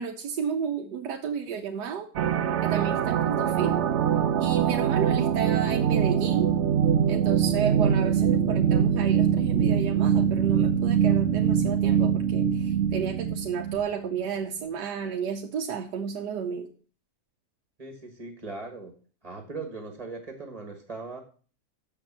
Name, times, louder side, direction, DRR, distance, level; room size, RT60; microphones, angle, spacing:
voice 1, 0.0-2.1 2.6-3.8 4.4-6.5 7.1-16.7, right 7 dB, 90° right, 3 dB, 1.4 m, -32 dB
sound 1, 2.2-13.9, right 8 dB, 60° right, 0.8 m, -23 dB
voice 2, 17.8-18.9 19.2-21.2, right 3 dB, 25° right, 5 dB, 1.4 m, -39 dB
7.0 x 6.7 x 7.2 m, 0.40 s
omnidirectional pair, 1.7 m